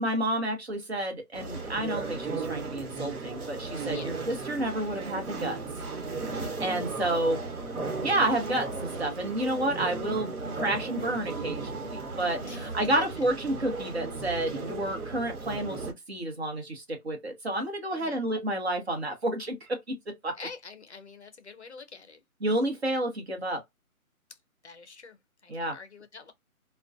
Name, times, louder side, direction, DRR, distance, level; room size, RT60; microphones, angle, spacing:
voice 1, 0.0-5.6 6.6-7.4 8.0-20.0 20.2-20.3 22.4-23.6 25.5-25.8, right 1 dB, 45° right, 0.9 m, -30 dB
sound 1, 1.3-15.9, right 3 dB, 80° right, 1.1 m, -36 dB
voice 2, 20.4-22.2 24.6-25.2 25.4-26.3, left 4 dB, 50° left, 0.5 m, -46 dB
2.4 x 2.2 x 2.4 m
hypercardioid pair, 170°, 44 cm